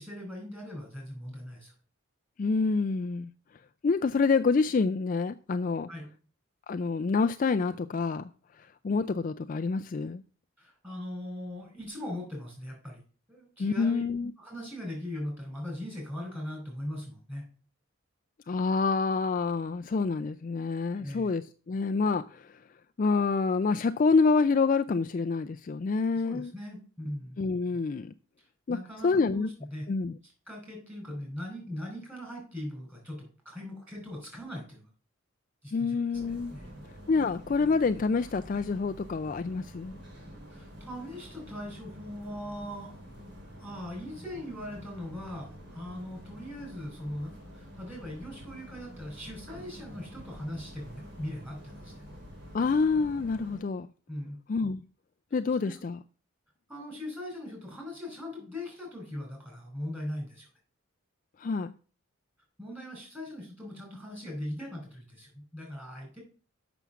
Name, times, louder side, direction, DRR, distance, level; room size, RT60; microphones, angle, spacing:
voice 1, 0.0-1.7 5.9-6.1 10.6-13.0 13.3-14.0 14.4-17.4 20.9-21.3 26.2-27.4 28.7-29.9 30.2-34.9 35.6-36.0 36.5-36.7 40.5-43.0 43.6-51.9 54.1-54.4 55.6-55.8 56.7-60.5 62.6-66.2, left 1 dB, 10° right, 4.9 m, -40 dB
voice 2, 2.4-3.3 3.8-5.9 6.7-8.3 8.6-10.2 13.6-14.3 18.5-22.5 23.0-26.5 27.4-28.1 28.7-28.8 29.0-29.5 29.9-30.2 35.7-36.5 37.1-40.0 52.5-53.9 54.5-54.8 55.3-56.0 61.4-61.7, left 4 dB, 40° left, 0.3 m, -27 dB
sound 1, 36.1-53.6, equal, 50° right, 2.8 m, -47 dB
7.1 x 6.1 x 6.8 m
head